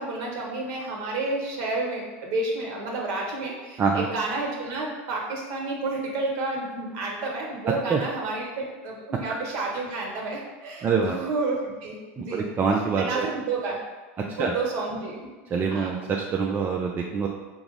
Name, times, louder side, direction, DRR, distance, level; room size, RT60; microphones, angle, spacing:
voice 1, 0.0-12.5 13.0-13.8 14.2-15.2 15.7-15.9, right 3 dB, 55° right, -1 dB, 1.1 m, -30 dB
voice 2, 10.8-11.2 12.2-13.3 14.4-14.5 15.5-17.3, right 5 dB, 30° right, 0 dB, 0.3 m, -25 dB
4.6 x 2.0 x 3.9 m, 1.3 s
hypercardioid pair, 105°, 7 cm